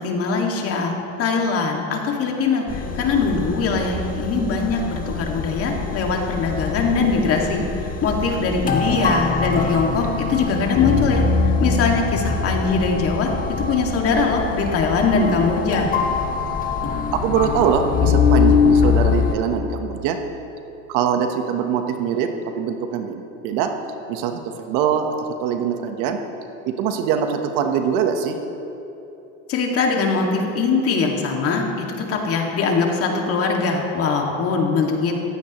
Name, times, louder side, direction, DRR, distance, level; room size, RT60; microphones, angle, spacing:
voice 1, 0.0-10.0 10.3-13.3 13.6-16.0 29.5-31.6 32.1-35.1, left 4 dB, 35° left, 0 dB, 2.2 m, -22 dB
sound 1, 2.7-19.4, left 5 dB, 20° left, 1.1 m, -23 dB
voice 2, 8.8-9.2 16.4-16.7 17.1-20.2 20.9-23.7 24.1-26.2 26.6-28.4, right 7 dB, 55° right, 6 dB, 1.2 m, -23 dB
16.5 x 15.5 x 3.1 m, 2.9 s
supercardioid pair, 120°, 38 cm